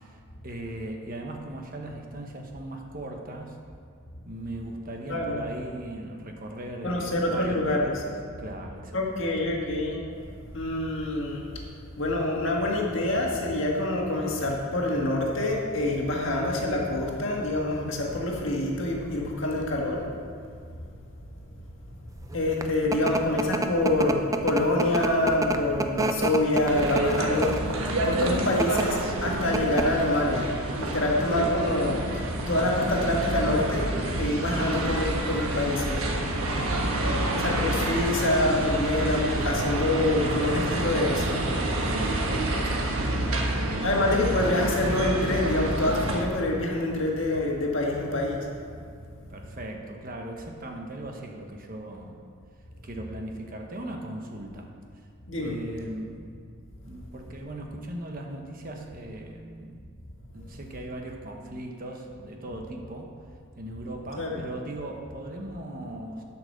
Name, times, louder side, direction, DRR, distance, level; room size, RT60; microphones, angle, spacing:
voice 1, 0.0-3.6 4.2-8.0 8.4-9.3 36.5-37.0 37.5-37.7 41.8-43.9 49.3-52.2 52.8-55.1 55.3-56.2 56.8-59.9 60.3-63.1 63.5-66.2, right 1 dB, 40° right, 2 dB, 1.1 m, -38 dB
voice 2, 5.1-5.4 6.8-7.9 8.9-10.0 10.5-11.7 12.0-20.1 22.3-27.6 28.0-36.0 37.3-41.4 43.8-48.5 55.3-55.6 64.2-64.4, left 1 dB, 60° left, -1 dB, 1.8 m, -26 dB
sound 1, 22.3-27.7 28.4-28.8 29.2-29.3 29.5-30.0, right 2 dB, 15° right, 0.4 m, -28 dB
sound 2, 26.7-46.2, right 1 dB, 80° right, 1.3 m, -28 dB
11.5 x 6.0 x 6.6 m, 2.2 s
head